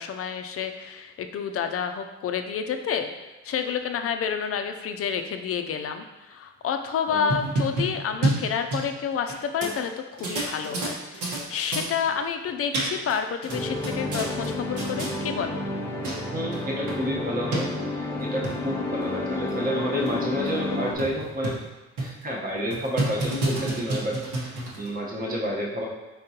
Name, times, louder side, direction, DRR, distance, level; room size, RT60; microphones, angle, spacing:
voice 1, 0.0-3.1 3.4-9.9 10.2-15.6, left 7 dB, 50° left, 7 dB, 0.5 m, -29 dB
voice 2, 7.1-7.4 16.3-21.6 22.0-25.9, equal, 30° right, -2 dB, 1.0 m, -30 dB
sound 1, 7.1-9.3 9.6-9.7 10.2-11.4 11.7-11.9 12.5-13.2 13.4-14.5 14.8-15.1 15.8-15.9 16.0-16.2 16.5-16.6 16.9-17.0 17.5-17.6 18.2-18.5 19.0-19.1 19.5-19.6 20.1-20.2 20.5-20.6 21.0-21.7 22.0-22.2 22.7-24.9, right 2 dB, 75° right, 1.2 m, -28 dB
sound 2, 13.5-20.9, left 1 dB, 10° left, 0.8 m, -30 dB
4.7 x 3.7 x 2.8 m, 1.1 s
cardioid pair, 90°, 30 cm